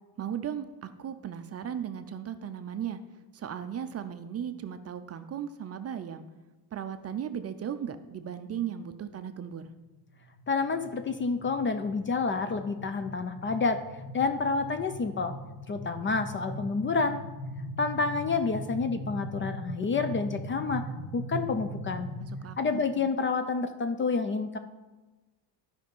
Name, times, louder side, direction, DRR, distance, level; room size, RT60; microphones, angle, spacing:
voice 1, 0.2-3.0 3.3-6.2 6.7-9.7 22.2-23.1, right 9 dB, 35° right, 9 dB, 0.5 m, -36 dB
sound 1, 9.9-22.4, equal, 50° left, 2.0 m, -40 dB
voice 2, 10.5-13.8 14.1-15.3 15.7-17.2 17.8-20.9 21.1-22.1 22.6-24.6, left 4 dB, 25° left, 9 dB, 0.5 m, -29 dB
11.0 x 5.2 x 5.4 m, 1.2 s
cardioid pair, 115°, 46 cm